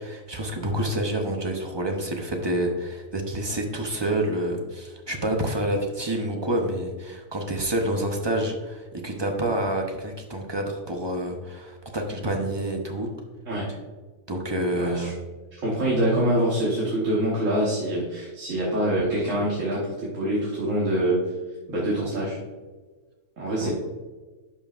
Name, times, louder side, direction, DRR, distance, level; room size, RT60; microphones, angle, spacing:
voice 1, 0.0-13.1 14.3-15.2 23.6-23.7, right 1 dB, 30° right, 2 dB, 0.5 m, -28 dB
voice 2, 14.7-15.1 15.5-21.2 21.7-22.4 23.4-23.7, right 1 dB, 55° right, -6 dB, 1.6 m, -25 dB
11.0 x 5.4 x 2.5 m, 1.4 s
omnidirectional pair, 1.7 m